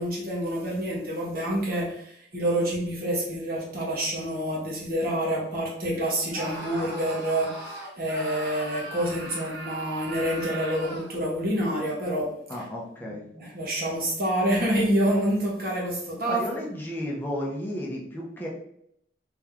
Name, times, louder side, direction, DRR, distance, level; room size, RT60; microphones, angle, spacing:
voice 1, 0.0-12.6 13.1-16.5, right 1 dB, 55° right, -3 dB, 1.4 m, -27 dB
Screaming, 6.3-11.2, right 1 dB, 85° right, 1.4 m, -38 dB
voice 2, 12.5-13.2 16.2-18.5, equal, 10° left, -3 dB, 0.7 m, -33 dB
3.5 x 3.1 x 3.5 m, 0.72 s
head